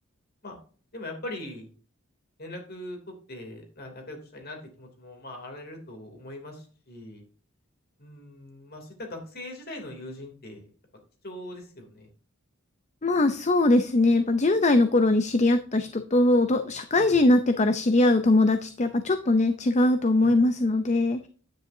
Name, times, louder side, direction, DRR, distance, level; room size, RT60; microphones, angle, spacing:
voice 1, 0.9-1.7 2.4-7.2 8.0-10.7 11.2-12.1 16.9-17.3 20.2-20.3, left 1 dB, 50° left, 3 dB, 3.0 m, -41 dB
voice 2, 13.0-21.3, left 2 dB, 35° left, 9 dB, 0.6 m, -21 dB
10.0 x 9.4 x 2.8 m, 0.42 s
head